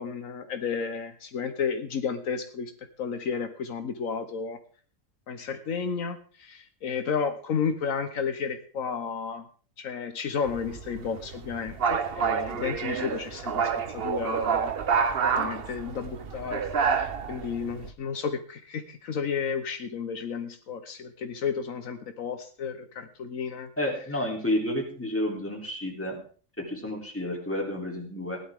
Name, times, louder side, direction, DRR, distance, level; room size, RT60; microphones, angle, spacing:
voice 1, 0.0-2.7 3.0-4.6 5.3-9.4 9.8-14.7 15.3-23.7, left 6 dB, 75° left, 8 dB, 1.4 m, -32 dB
sound 1, 10.5-17.9, right 6 dB, 50° right, 1.0 m, -28 dB
voice 2, 23.8-26.2 26.6-28.4, left 1 dB, 10° left, -1 dB, 3.2 m, -30 dB
16.5 x 11.5 x 3.6 m, 0.42 s
omnidirectional pair, 1.4 m